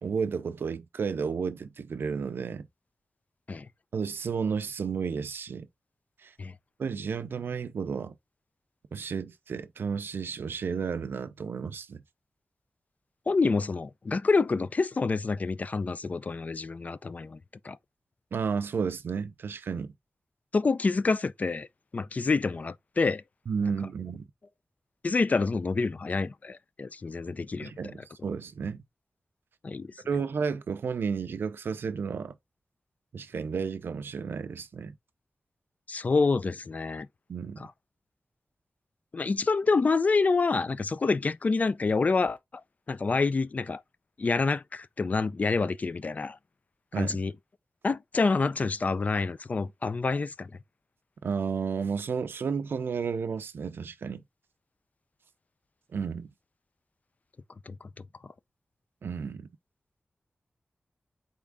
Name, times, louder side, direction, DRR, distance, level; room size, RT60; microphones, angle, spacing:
voice 1, 0.0-2.7 3.9-5.7 6.2-6.3 6.8-8.1 8.9-12.0 18.3-19.9 23.5-24.3 27.6-28.8 30.1-32.3 33.1-34.9 37.3-37.6 46.9-47.2 51.2-54.2 55.9-56.3 59.0-59.5, right 6 dB, 90° right, 0.5 m, -32 dB
voice 2, 13.3-17.4 17.6-17.8 20.5-21.7 21.9-23.2 25.0-27.7 29.6-29.9 35.9-37.1 37.6-37.7 39.1-42.4 42.9-43.8 44.2-46.4 46.9-47.3 47.8-50.5 57.7-57.8, left 4 dB, 45° left, 0.4 m, -27 dB
4.3 x 3.5 x 3.5 m
wide cardioid pair, 95°, 4 cm